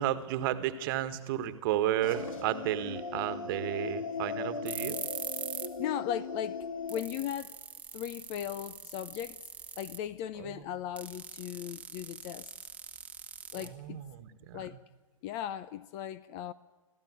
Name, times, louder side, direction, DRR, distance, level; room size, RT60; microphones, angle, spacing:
voice 1, 0.0-5.0 10.4-10.6 13.6-14.6, right 12 dB, 40° right, 1.5 m, -33 dB
sound 1, 2.0-7.0, left 4 dB, 65° left, 3.5 m, -38 dB
sound 2, 4.7-5.8 6.1-6.2 6.6-6.7 6.9-10.1 11.0-14.1, right 5 dB, 5° right, 1.3 m, -42 dB
voice 2, 5.8-7.5 7.9-9.4 9.8-12.5 13.5-14.1 14.5-14.8 15.2-16.5, left 11 dB, 30° left, 0.7 m, -37 dB
25.5 x 14.5 x 9.7 m
figure-of-eight pair, 120°, 18 cm